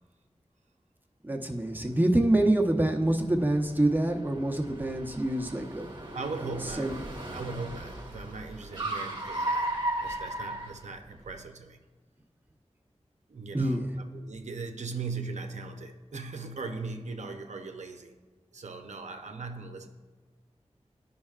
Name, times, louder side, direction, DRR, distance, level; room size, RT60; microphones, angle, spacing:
voice 1, 1.2-5.9 6.8-6.9 13.5-13.9, right 1 dB, 15° right, 0.8 m, -26 dB
Car, 1.5-11.4, right 1 dB, 40° right, 1.1 m, -37 dB
voice 2, 6.1-7.0 7.3-9.7 10.0-11.8 13.3-13.8 14.1-18.1 18.5-19.9, right 4 dB, 90° right, 0.6 m, -39 dB
13.5 x 5.5 x 2.4 m
wide cardioid pair, 75°, 12 cm